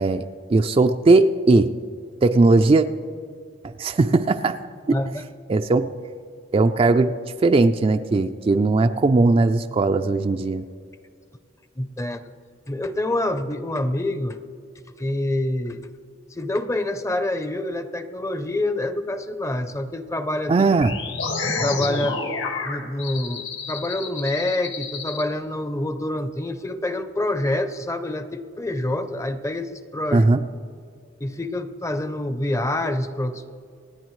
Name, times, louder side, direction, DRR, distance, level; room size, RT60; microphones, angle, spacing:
voice 1, 0.0-1.8 2.2-2.9 3.8-4.6 4.9-5.0 5.5-5.9 6.5-7.2 7.4-10.7 20.5-20.9 30.1-30.4, right 3 dB, 30° right, 8 dB, 0.3 m, -18 dB
voice 2, 4.9-5.2 11.8-12.2 12.7-14.4 15.0-15.9 16.3-20.5 21.5-22.2 22.6-30.3 31.2-33.5, left 1 dB, 15° left, 10 dB, 0.5 m, -26 dB
sound 1, 20.8-25.2, left 3 dB, 70° left, 1.7 m, -29 dB
27.0 x 9.5 x 3.1 m, 2.2 s
head